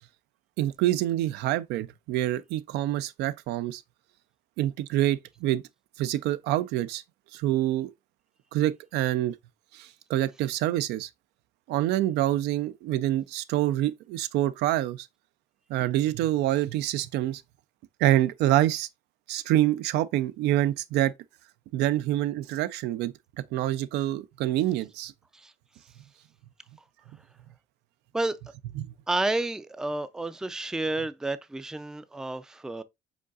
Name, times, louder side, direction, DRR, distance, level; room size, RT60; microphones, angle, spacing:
voice 1, 0.6-3.8 4.6-5.6 6.0-7.0 7.3-7.9 8.5-9.4 9.7-11.1 11.7-15.1 15.7-17.4 18.0-18.9 19.3-21.1 21.7-23.1 23.5-25.1 28.8-28.9, right 14 dB, 85° right, 0.4 m, -26 dB
voice 2, 29.1-32.8, right 2 dB, 5° right, 0.3 m, -30 dB
5.1 x 3.9 x 2.3 m
cardioid pair, 110°, 17 cm